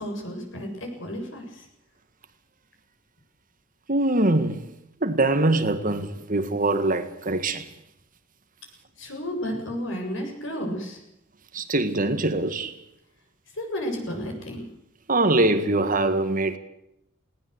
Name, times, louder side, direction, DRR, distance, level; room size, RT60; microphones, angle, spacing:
voice 1, 0.0-1.6 9.0-11.0 13.5-14.6, equal, 70° left, 7.7 m, -32 dB
voice 2, 3.9-4.6 5.0-7.7 11.5-12.7 15.1-16.6, right 2 dB, 45° right, 2.0 m, -23 dB
20.0 x 18.5 x 8.2 m
head